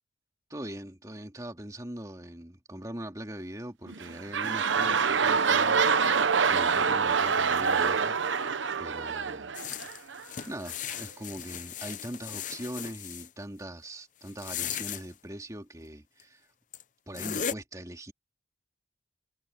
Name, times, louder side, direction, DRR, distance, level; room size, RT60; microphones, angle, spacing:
voice 1, 0.5-6.2 6.5-8.2 8.8-9.5 9.9-10.1 10.5-16.5 17.1-18.1, right 1 dB, 20° right, 2.5 m, -41 dB
sound 1, 3.9-10.2 10.9-11.0, right 5 dB, 85° right, 0.9 m, -26 dB
sound 2, 9.5-13.3 14.3-15.0 16.2-16.3 16.7-16.8 17.1-17.5, left 8 dB, 40° left, 0.6 m, -37 dB
head